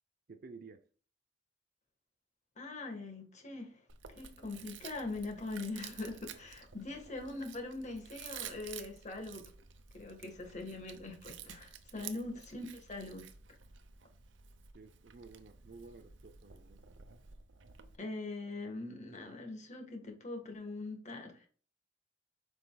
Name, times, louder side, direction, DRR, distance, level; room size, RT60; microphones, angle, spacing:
voice 1, 0.3-0.8 11.9-12.1 14.7-16.8, right 4 dB, 50° right, 0.5 m, -53 dB
voice 2, 2.6-3.8 4.1-9.5 9.9-13.2 18.0-21.5, left 2 dB, 40° left, 1.6 m, -42 dB
Chewing mastication, 3.9-18.0, right 8 dB, 85° right, 0.8 m, -52 dB
7.8 x 5.3 x 2.3 m
head